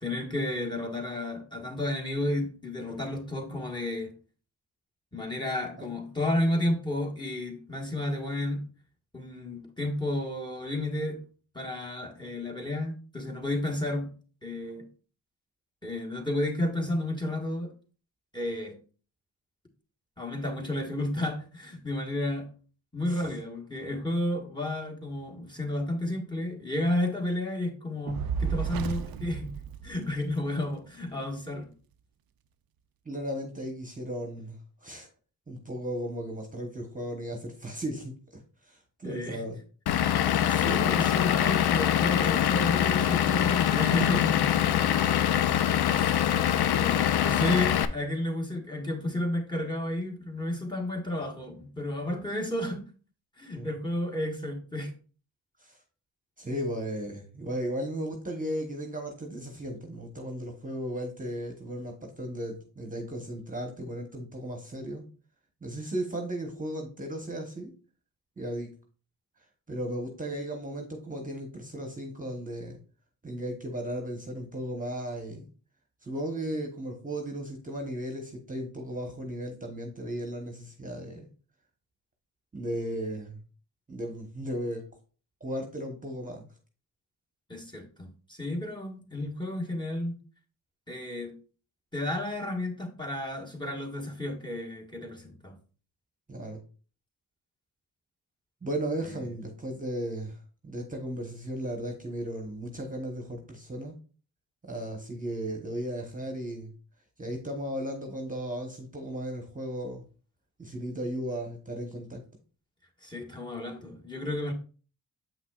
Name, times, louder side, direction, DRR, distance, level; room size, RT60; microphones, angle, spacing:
voice 1, 0.0-4.1 5.1-8.7 9.1-11.2 11.5-14.1 14.4-14.9 15.8-17.7 18.3-18.8 20.2-22.5 22.9-29.5 29.8-31.7 39.0-39.4 40.4-45.1 45.9-52.8 53.4-54.9 87.5-90.2 90.9-91.4 91.9-95.5 99.0-99.3 113.0-114.5, left 1 dB, 10° left, 1.6 m, -32 dB
Fire, 28.1-30.5, right 7 dB, 65° right, 0.5 m, -33 dB
voice 2, 33.0-35.1 35.5-38.2 38.6-39.6 44.8-44.9 53.6-53.7 55.6-55.8 56.4-65.0 65.6-67.7 68.4-68.8 69.7-72.8 73.2-75.5 76.0-81.3 82.5-83.4 83.9-84.9 85.4-86.5 96.3-96.6 98.6-100.4 100.6-104.0 104.6-106.7 107.2-110.0 110.6-112.2, right 1 dB, 20° right, 1.1 m, -35 dB
Vehicle / Engine, 39.9-47.9, left 10 dB, 75° left, 0.6 m, -24 dB
7.4 x 5.8 x 2.4 m
cardioid pair, 60°, 39 cm